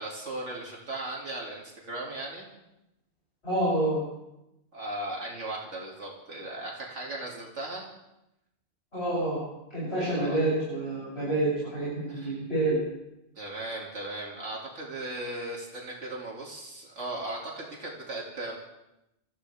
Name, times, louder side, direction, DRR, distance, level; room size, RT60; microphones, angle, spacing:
voice 1, 0.0-2.5 4.7-7.9 10.1-10.5 12.1-12.4 13.4-18.6, right 2 dB, 80° right, -3 dB, 2.7 m, -37 dB
voice 2, 3.4-4.0 8.9-9.4 9.7-12.8, right 2 dB, 55° left, -9 dB, 7.6 m, -28 dB
27.5 x 14.5 x 3.5 m, 0.90 s
omnidirectional pair, 1.2 m